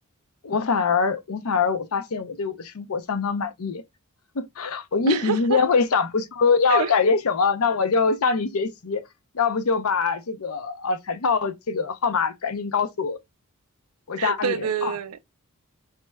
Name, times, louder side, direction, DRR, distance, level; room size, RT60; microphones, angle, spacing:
voice 1, 0.4-3.8 4.3-9.0 9.3-13.2 14.1-14.9, left 5 dB, 75° left, 0.6 m, -23 dB
voice 2, 5.1-5.6 6.7-6.9 14.2-15.2, right 7 dB, 85° right, 0.5 m, -27 dB
4.4 x 3.2 x 2.2 m
head